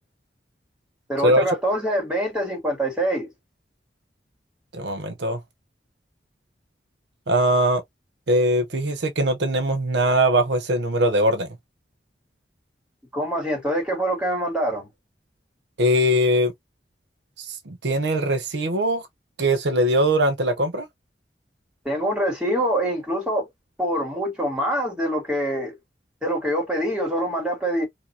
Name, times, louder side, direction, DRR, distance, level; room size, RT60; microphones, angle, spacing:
voice 1, 1.1-3.3 13.1-14.9 21.8-23.5 23.8-25.7 26.2-27.9, equal, 5° right, 2.3 m, -25 dB
voice 2, 4.7-5.4 7.3-7.8 8.3-11.5 15.8-16.5 17.4-19.0 19.4-20.9, right 1 dB, 75° right, 0.8 m, -21 dB
4.6 x 2.8 x 2.7 m
head